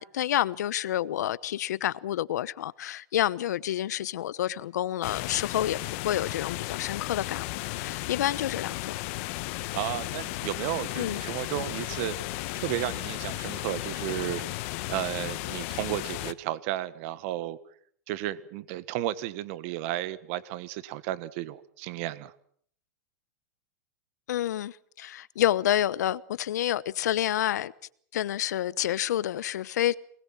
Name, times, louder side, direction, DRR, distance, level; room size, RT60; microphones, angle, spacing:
voice 1, 0.0-5.8 6.0-7.4 7.8-8.9 11.0-11.2 24.3-27.7 28.1-30.0, left 12 dB, 80° left, 1.0 m, -28 dB
sound 1, 5.0-16.3, left 20 dB, 50° left, 1.2 m, -34 dB
voice 2, 9.7-17.6 18.1-22.3, right 14 dB, 50° right, 1.5 m, -33 dB
26.5 x 20.5 x 7.5 m
supercardioid pair, 145°, 9 cm